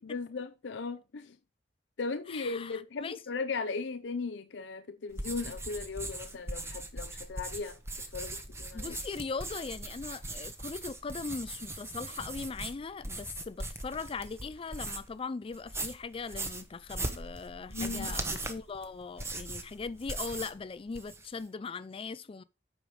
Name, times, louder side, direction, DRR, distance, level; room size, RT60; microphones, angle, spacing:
voice 1, 0.0-1.4 2.0-7.8 8.1-9.0 17.7-18.2, left 4 dB, 80° left, 0.6 m, -37 dB
voice 2, 2.3-3.2 8.7-22.4, left 4 dB, 30° left, 0.4 m, -40 dB
sound 1, 5.1-15.2 15.5-20.6 20.9-21.4, right 2 dB, 15° right, 1.0 m, -39 dB
8.6 x 5.2 x 4.7 m
head